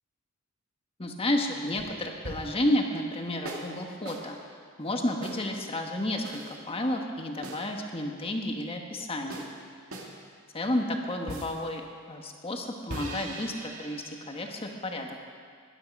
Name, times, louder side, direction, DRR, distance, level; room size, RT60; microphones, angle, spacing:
voice 1, 1.0-4.4 4.8-6.4 6.7-9.5 10.5-15.2, left 1 dB, 25° left, 2 dB, 1.5 m, -31 dB
sound 1, 1.8-2.7 3.4-3.7 4.1-4.3 5.2-5.4 6.2-6.6 7.4-7.7 9.3-9.5 9.9-10.1 11.3-11.6 12.9-15.0, right 2 dB, 75° right, 2.1 m, -41 dB
20.0 x 12.0 x 5.4 m, 2.1 s
head